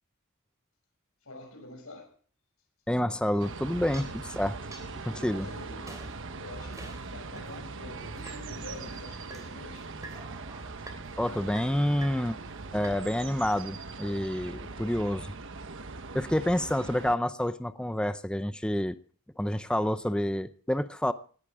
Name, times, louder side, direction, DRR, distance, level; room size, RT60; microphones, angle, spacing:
voice 1, 1.2-2.1 5.3-9.9, left 2 dB, 70° left, 6.0 m, -47 dB
voice 2, 2.9-4.6 5.0-5.5 11.2-12.4 12.7-15.3 16.1-19.0 19.4-21.1, left 1 dB, 5° left, 0.5 m, -28 dB
sound 1, 3.3-7.6 8.1-9.5 9.9-13.0 13.4-13.6, right 2 dB, 15° right, 3.3 m, -50 dB
sound 2, 3.4-17.2, right 3 dB, 60° right, 1.2 m, -41 dB
19.0 x 13.5 x 3.6 m
head